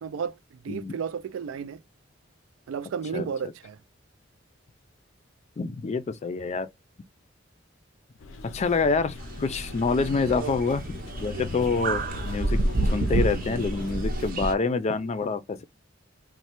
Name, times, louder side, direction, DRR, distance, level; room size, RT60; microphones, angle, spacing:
voice 1, 0.0-1.8 2.7-3.8 10.4-10.6 11.3-11.5 14.1-14.5, right 7 dB, 85° right, 0.3 m, -33 dB
voice 2, 5.6-6.7 8.5-10.8 11.2-12.6 12.9-15.6, left 4 dB, 35° left, 0.3 m, -27 dB
sound 1, 8.2-14.3, left 3 dB, 90° left, 0.5 m, -39 dB
sound 2, 9.2-14.5, right 2 dB, 45° right, 0.6 m, -29 dB
3.1 x 2.1 x 2.9 m
head